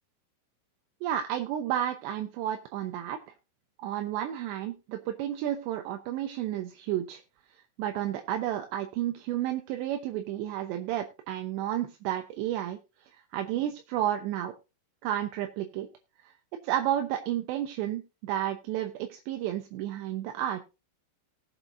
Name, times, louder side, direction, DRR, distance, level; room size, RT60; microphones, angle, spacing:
voice 1, 1.0-3.2 3.8-7.2 7.8-12.8 13.1-14.5 15.0-15.9 16.2-16.3 16.6-20.6, right 11 dB, 80° right, 5 dB, 3.1 m, -31 dB
19.0 x 8.1 x 2.6 m, 0.29 s
omnidirectional pair, 5.1 m